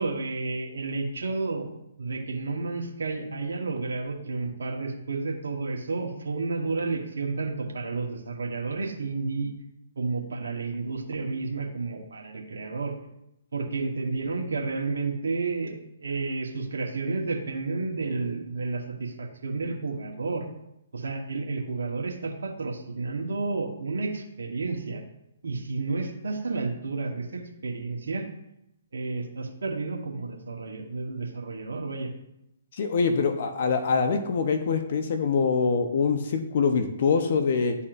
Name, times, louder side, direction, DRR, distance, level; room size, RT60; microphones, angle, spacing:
voice 1, 0.0-9.5 9.9-12.9 13.5-20.4 20.9-25.0 25.4-28.3 28.9-32.1, right 3 dB, 75° right, 0 dB, 1.3 m, -31 dB
voice 2, 32.7-37.8, left 5 dB, 55° left, 7 dB, 0.8 m, -24 dB
11.5 x 4.2 x 2.5 m, 0.83 s
hypercardioid pair, 140°, 0 cm